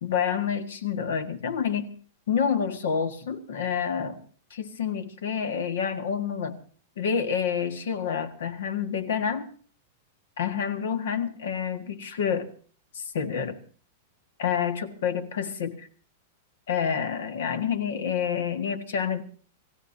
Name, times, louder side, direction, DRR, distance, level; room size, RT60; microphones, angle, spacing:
voice 1, 0.0-1.9 2.3-4.2 4.5-6.6 7.0-9.5 10.4-12.5 12.9-13.6 14.4-15.9 16.7-19.2, left 7 dB, 70° left, 10 dB, 1.8 m, -28 dB
29.0 x 15.5 x 2.8 m, 0.42 s
supercardioid pair, 180°, 0 cm